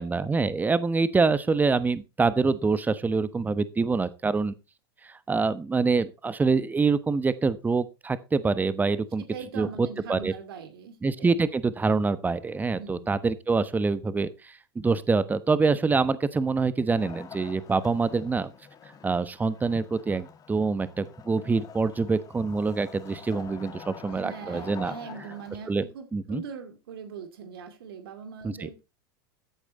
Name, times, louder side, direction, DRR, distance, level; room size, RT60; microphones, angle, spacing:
voice 1, 0.0-4.5 5.0-9.2 9.6-10.3 11.0-18.5 19.0-24.9 25.7-25.8 26.1-26.4 28.4-28.7, right 4 dB, 15° right, 1.1 m, -25 dB
voice 2, 9.2-11.3 12.8-13.1 24.1-28.8, right 6 dB, 80° right, 2.4 m, -41 dB
Wood, 17.0-25.8, left 7 dB, 30° left, 2.0 m, -47 dB
14.0 x 8.4 x 4.1 m
hypercardioid pair, 105°, 12 cm